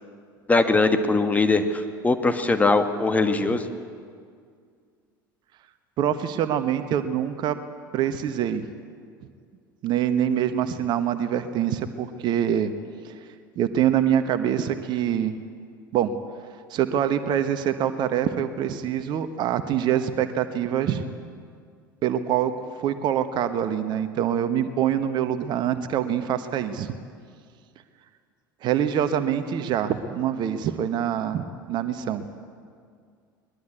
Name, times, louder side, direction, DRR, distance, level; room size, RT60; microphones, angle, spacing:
voice 1, 0.5-3.6, left 3 dB, 15° left, 7 dB, 1.7 m, -21 dB
voice 2, 6.0-7.6 7.9-8.6 9.8-12.7 13.0-13.2 13.6-15.3 15.9-16.1 16.7-21.1 22.0-22.5 22.8-26.9 28.6-32.3, right 9 dB, 40° right, 10 dB, 1.3 m, -25 dB
22.0 x 21.0 x 8.4 m, 2.1 s
figure-of-eight pair, 70°, 11 cm